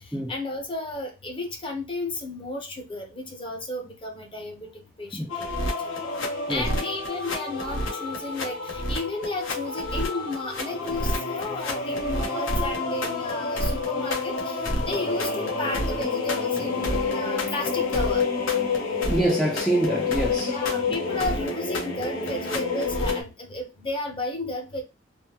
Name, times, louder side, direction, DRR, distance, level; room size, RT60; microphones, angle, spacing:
voice 1, 0.0-5.7 6.5-18.2 20.4-24.8, left 2 dB, 25° left, 0.8 m, -33 dB
sound 1, 5.3-23.2, left 3 dB, 70° left, 1.1 m, -28 dB
voice 2, 19.1-20.5, right 1 dB, 5° left, 0.5 m, -25 dB
3.4 x 2.1 x 2.9 m
head